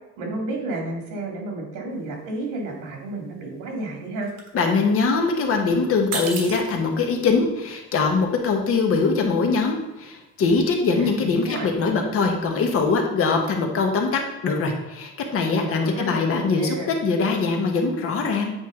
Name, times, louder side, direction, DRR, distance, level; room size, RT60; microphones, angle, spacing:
voice 1, 0.2-4.3 10.9-11.7 15.5-16.9, right 2 dB, 80° right, 1 dB, 2.1 m, -31 dB
sound 1, 1.9-2.2 2.4-3.1 3.4-5.6 6.0-10.9, right 4 dB, 55° right, 1.3 m, -36 dB
voice 2, 4.5-16.7 17.0-18.5, left 4 dB, 45° left, 3 dB, 1.1 m, -22 dB
8.3 x 4.5 x 3.6 m, 1.0 s
cardioid pair, 155°, 31 cm